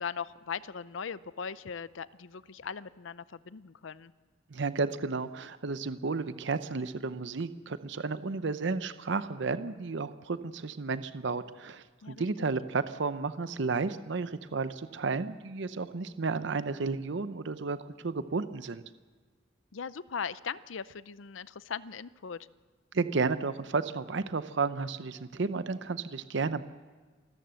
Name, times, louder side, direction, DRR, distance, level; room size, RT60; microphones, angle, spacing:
voice 1, 0.0-4.1 12.0-12.5 19.7-22.5, left 6 dB, 85° left, 17 dB, 0.6 m, -39 dB
voice 2, 4.5-18.8 22.9-26.6, right 4 dB, 70° right, 13 dB, 0.7 m, -32 dB
27.5 x 14.0 x 7.7 m, 1.4 s
head